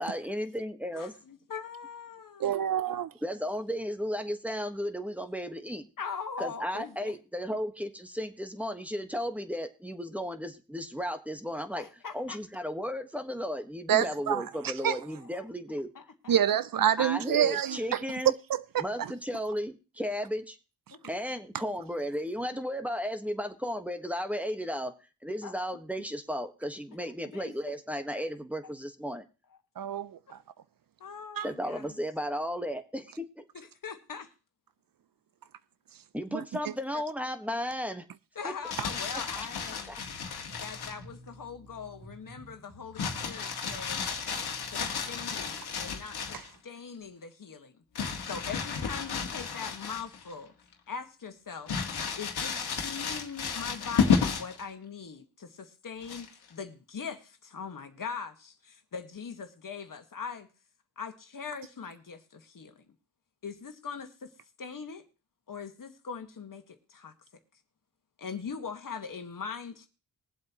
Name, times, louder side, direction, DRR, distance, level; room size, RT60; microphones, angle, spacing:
voice 1, 0.0-1.1 2.4-2.5 3.2-5.9 6.4-11.8 12.1-15.9 17.0-18.3 18.8-20.6 21.1-24.9 25.2-29.2 31.4-33.4 36.1-38.1 38.4-38.5 39.3-39.5 39.9-40.0, equal, 5° right, 1.4 m, -34 dB
voice 2, 0.9-2.5 6.0-7.2 11.8-12.4 15.2-15.5 15.9-16.3 20.9-21.1 25.4-25.5 27.3-27.7 30.3-30.4 31.0-31.9 33.5-34.3 38.3-40.0 40.5-44.0 44.7-47.7 48.2-50.5 50.9-51.7 52.1-60.5 61.0-62.8 63.4-64.3 64.6-65.0 65.5-67.1 68.2-69.9, left 6 dB, 55° left, 1.7 m, -41 dB
voice 3, 2.4-3.1 13.9-14.4 14.8-15.0 16.3-19.1 29.8-30.2 31.4-31.5 36.3-36.4, right 10 dB, 60° right, 0.6 m, -27 dB
Crumpling crinkling, 38.5-41.0 43.0-46.5 48.0-50.3 50.7-50.8 51.7-54.6 56.0-56.5, left 6 dB, 85° left, 1.8 m, -32 dB
sound 1, 40.0-45.3, right 1 dB, 85° right, 7.2 m, -52 dB
21.5 x 7.8 x 3.0 m
cardioid pair, 65°, 38 cm